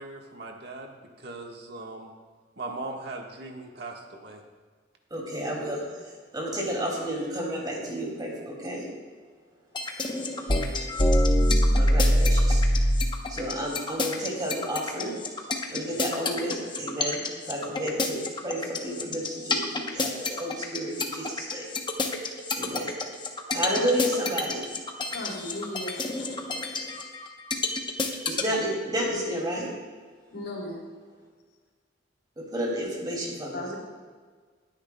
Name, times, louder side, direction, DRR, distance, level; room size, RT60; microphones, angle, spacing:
voice 1, 0.0-2.1 2.6-4.4, right 2 dB, 60° right, 1 dB, 1.5 m, -39 dB
voice 2, 5.1-5.8 6.3-8.8 11.8-12.6 13.3-15.1 15.7-17.2 17.5-18.2 18.4-21.6 22.6-22.9 23.5-24.6 28.3-29.7 32.5-33.8, equal, 20° right, -2 dB, 2.5 m, -31 dB
sound 1, 9.7-28.4, left 1 dB, 25° left, 0.9 m, -24 dB
voice 3, 25.1-26.3 30.3-30.8 33.5-33.8, left 1 dB, 75° left, -2 dB, 3.7 m, -36 dB
19.5 x 9.9 x 2.3 m, 1.6 s
head